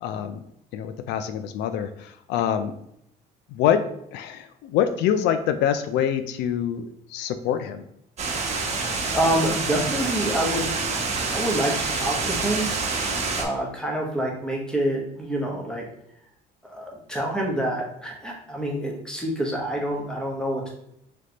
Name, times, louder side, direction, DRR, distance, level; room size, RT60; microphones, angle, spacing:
voice 1, 0.0-0.4 0.7-2.7 3.5-3.8 4.1-7.8, left 9 dB, 85° left, 10 dB, 0.4 m, -25 dB
sound 1, 8.2-13.4, right 4 dB, 40° right, 1.0 m, -27 dB
voice 2, 8.9-10.7 11.3-12.7 13.4-15.8 16.6-20.7, right 1 dB, 5° left, -1 dB, 1.1 m, -27 dB
3.4 x 3.2 x 3.9 m, 0.76 s
cardioid pair, 110°, 17 cm